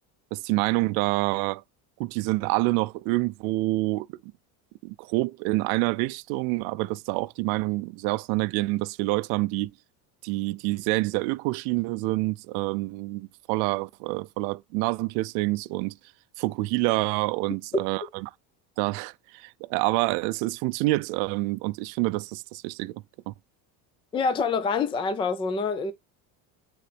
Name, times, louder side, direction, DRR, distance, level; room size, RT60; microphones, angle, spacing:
voice 1, 0.3-1.6 2.0-4.1 4.8-9.7 10.2-16.0 16.4-18.3 18.8-23.3, right 21 dB, 65° right, 0.5 m, -27 dB
voice 2, 24.1-25.9, left 5 dB, 15° left, 0.5 m, -26 dB
9.5 x 4.0 x 3.3 m
cardioid pair, 160°, 40 cm